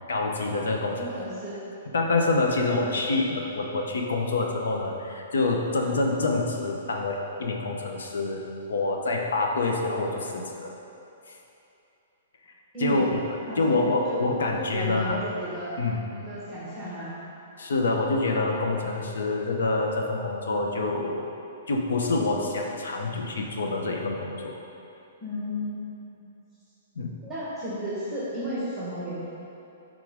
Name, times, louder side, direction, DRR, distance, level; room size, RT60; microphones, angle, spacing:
voice 1, 0.1-1.1 1.9-10.7 12.8-13.2 13.6-15.2 15.8-16.0 17.6-21.3 21.7-24.5 27.0-27.2, left 3 dB, 90° left, 0 dB, 1.0 m, -26 dB
voice 2, 1.0-1.6 12.7-13.1 13.5-14.2 14.5-15.8 16.1-17.1 25.2-26.3 27.2-29.3, equal, 5° right, -9 dB, 1.4 m, -34 dB
10.5 x 3.9 x 3.6 m, 2.8 s
hypercardioid pair, 165°, 0 cm